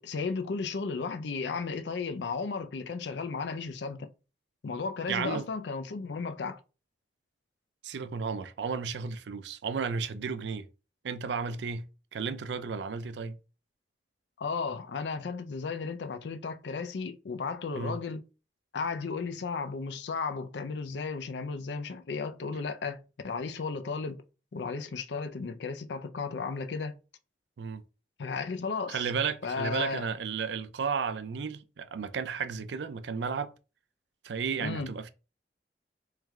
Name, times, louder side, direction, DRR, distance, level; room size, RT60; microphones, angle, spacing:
voice 1, 0.0-4.1 4.6-6.6 14.4-18.2 18.7-24.2 24.5-26.9 28.2-29.1 29.4-30.1 34.6-34.9, left 4 dB, 85° left, 0.5 m, -34 dB
voice 2, 5.1-5.5 7.8-10.7 11.0-13.4 17.7-18.0 27.6-27.8 28.9-33.5 34.2-35.1, right 5 dB, 85° right, 0.4 m, -33 dB
3.2 x 3.2 x 3.5 m
head